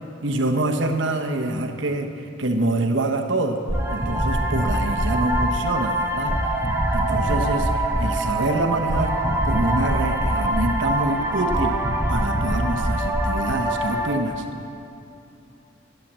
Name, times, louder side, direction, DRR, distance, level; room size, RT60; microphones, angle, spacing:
voice 1, 0.2-2.1 2.4-3.6 3.9-6.4 6.9-9.2 9.4-11.8 12.1-14.4, right 2 dB, 70° right, 4 dB, 1.0 m, -25 dB
sound 1, 3.7-14.1, right 1 dB, 15° right, 1.1 m, -23 dB
12.0 x 9.2 x 7.4 m, 2.8 s
head